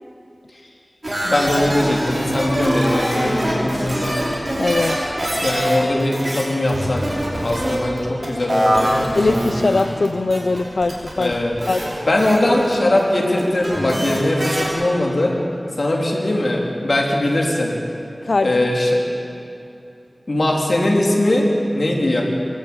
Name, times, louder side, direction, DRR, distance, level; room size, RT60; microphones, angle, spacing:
sound 1, 1.0-14.7, equal, 40° right, 6.2 m, -23 dB
voice 1, 1.2-4.2 5.4-7.0 7.4-9.1 11.2-11.6 12.0-15.4 15.8-17.7 18.4-19.0 20.3-22.2, left 1 dB, 65° left, -1 dB, 3.5 m, -20 dB
voice 2, 4.6-5.0 9.2-11.3 11.7-11.9 18.2-18.6, left 3 dB, 85° left, 8 dB, 0.5 m, -20 dB
24.5 x 12.5 x 8.8 m, 2.7 s
wide cardioid pair, 55°, 0 cm